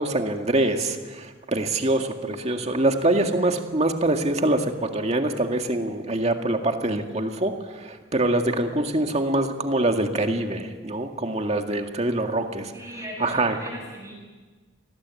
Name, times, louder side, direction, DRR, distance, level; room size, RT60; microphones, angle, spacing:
voice 1, 0.0-12.7 13.2-13.6, right 2 dB, 35° right, 4 dB, 2.0 m, -24 dB
voice 2, 12.7-14.1, equal, 15° right, -1 dB, 7.7 m, -38 dB
28.0 x 20.5 x 8.4 m, 1.4 s
head